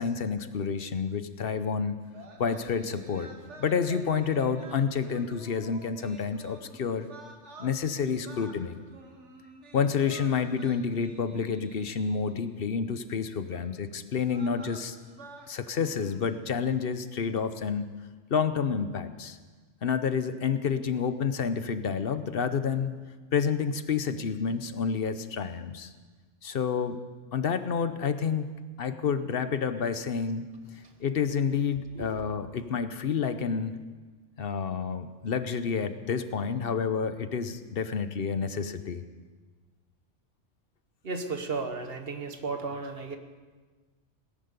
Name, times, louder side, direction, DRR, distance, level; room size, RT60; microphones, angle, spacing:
voice 1, 0.0-2.0 2.4-3.3 3.6-7.1 7.6-8.8 9.7-15.0 15.5-17.9 18.3-19.4 19.8-22.9 23.3-25.9 26.4-27.0 27.3-30.5 31.0-33.8 34.4-39.0, left 6 dB, 55° left, 11 dB, 1.0 m, -29 dB
sound 1, 2.0-12.5 13.5-13.7 14.2-16.4, right 3 dB, 70° right, 1.7 m, -50 dB
voice 2, 41.0-43.2, right 4 dB, 55° right, 7 dB, 1.4 m, -34 dB
18.5 x 10.5 x 6.7 m, 1.4 s
omnidirectional pair, 1.2 m